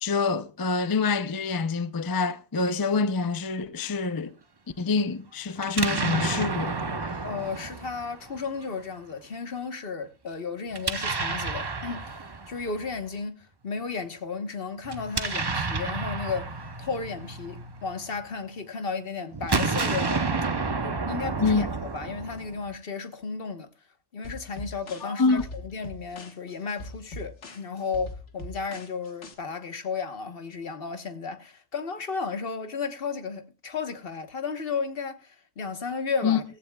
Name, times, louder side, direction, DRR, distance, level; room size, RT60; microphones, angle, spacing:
voice 1, 0.0-4.3 4.8-7.2 21.4-21.7 25.0-25.4 36.2-36.4, left 4 dB, 30° left, 0.4 m, -26 dB
Explosion, 5.6-8.6 10.7-13.0 14.8-18.3 19.3-22.7, right 3 dB, 25° right, 0.6 m, -30 dB
voice 2, 7.2-16.5 16.8-20.3 20.8-23.7 24.1-36.4, left 5 dB, 55° left, 1.3 m, -34 dB
sound 1, 24.2-29.3, left 1 dB, 85° left, 1.9 m, -42 dB
16.5 x 15.0 x 2.3 m
omnidirectional pair, 1.2 m